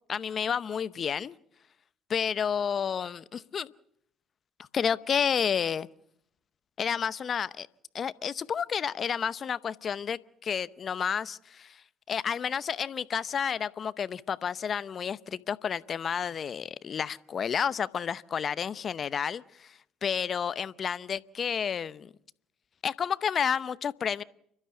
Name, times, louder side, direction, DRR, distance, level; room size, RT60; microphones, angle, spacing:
voice 1, 0.1-1.4 2.1-3.7 4.6-5.9 6.8-7.7 7.9-11.8 12.1-22.1 22.8-24.2, left 7 dB, 45° left, 17 dB, 0.7 m, -31 dB
30.0 x 12.5 x 7.1 m, 0.71 s
hypercardioid pair, 65°, 0 cm